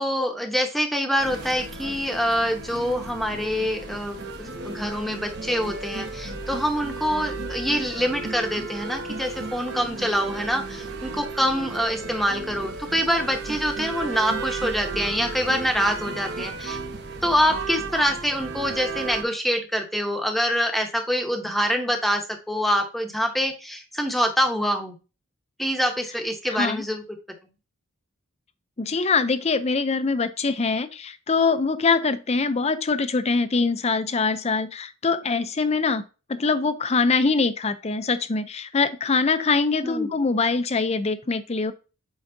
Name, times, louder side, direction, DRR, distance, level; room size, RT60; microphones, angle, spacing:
voice 1, 0.0-16.8 17.2-24.9 25.6-27.0 39.8-40.2, equal, ahead, 4 dB, 0.9 m, -25 dB
sound 1, 1.2-19.2, right 3 dB, 55° right, 1.0 m, -34 dB
voice 2, 26.5-26.8 28.8-36.0 36.3-41.7, left 4 dB, 30° left, 11 dB, 0.5 m, -23 dB
7.8 x 4.8 x 2.7 m, 0.32 s
head